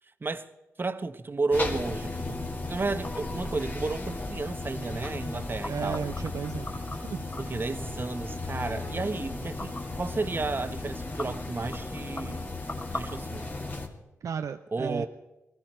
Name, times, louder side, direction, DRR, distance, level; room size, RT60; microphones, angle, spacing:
voice 1, 0.8-6.1 7.4-12.5 12.9-13.5 14.7-15.1, right 3 dB, 35° right, 1.1 m, -32 dB
sound 1, 1.5-13.9, left 2 dB, 35° left, 2.4 m, -35 dB
voice 2, 5.7-7.3 14.2-15.1, right 7 dB, 70° right, 0.5 m, -34 dB
19.5 x 15.0 x 4.4 m
cardioid pair, 50°, 6 cm